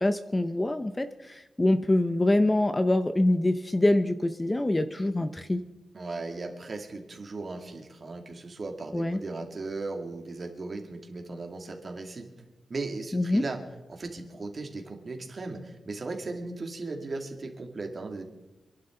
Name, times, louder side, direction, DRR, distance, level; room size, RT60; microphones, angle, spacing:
voice 1, 0.0-5.6 8.9-9.2 13.1-13.4, left 1 dB, 15° left, 10 dB, 0.7 m, -25 dB
voice 2, 5.9-12.3 12.7-13.6 13.9-18.2, right 3 dB, 40° right, 3 dB, 2.5 m, -37 dB
27.0 x 11.5 x 3.9 m, 1.1 s
wide cardioid pair, 125°, 0 cm